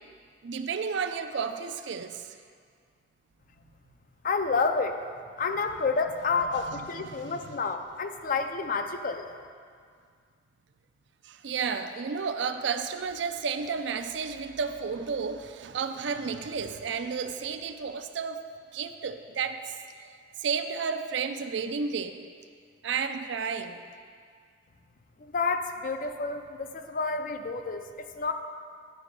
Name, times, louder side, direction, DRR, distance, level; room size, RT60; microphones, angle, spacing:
voice 1, 0.4-2.3 6.7-7.6 11.2-18.4 18.7-19.8 20.0-20.1 20.4-22.2 22.8-23.8, right 6 dB, 70° right, 8 dB, 0.4 m, -32 dB
voice 2, 4.2-5.0 5.4-9.2 25.2-28.3, left 4 dB, 45° left, 7 dB, 0.5 m, -29 dB
9.7 x 4.9 x 5.2 m, 2.1 s
head